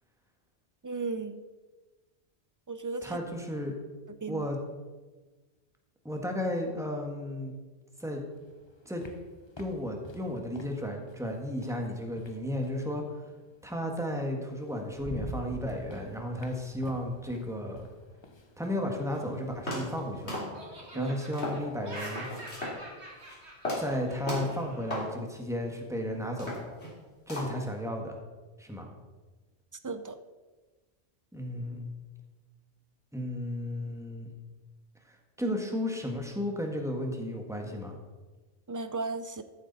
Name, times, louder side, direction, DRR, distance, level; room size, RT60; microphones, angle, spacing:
voice 1, 0.8-1.4 2.7-3.2 4.2-4.4 20.9-21.1 29.8-30.2 38.7-39.4, right 3 dB, 30° right, 11 dB, 0.3 m, -35 dB
voice 2, 3.0-3.8 4.3-4.6 6.0-7.5 8.0-8.2 8.8-9.0 9.6-13.0 13.6-17.9 18.6-20.4 20.9-22.3 23.8-26.5 27.3-28.2 28.6-28.9 31.3-31.9 33.1-34.3 35.4-38.0, left 1 dB, 5° right, 2 dB, 1.6 m, -33 dB
sound 1, 8.3-12.9 14.2-14.3 14.7-20.3, left 1 dB, 25° left, 0.9 m, -46 dB
sound 2, 19.1-19.2 19.7-20.0 20.3-20.9 21.3-21.7 22.0-22.8 23.1-23.4 23.6-23.9 24.3-24.6 24.9-25.1 25.6-25.7 26.3-27.0 27.3-27.7, left 1 dB, 80° left, 3.5 m, -35 dB
Laughter, 19.3-20.2 20.5-24.9, right 2 dB, 80° right, 2.5 m, -46 dB
14.0 x 8.6 x 4.1 m, 1.3 s
omnidirectional pair, 1.1 m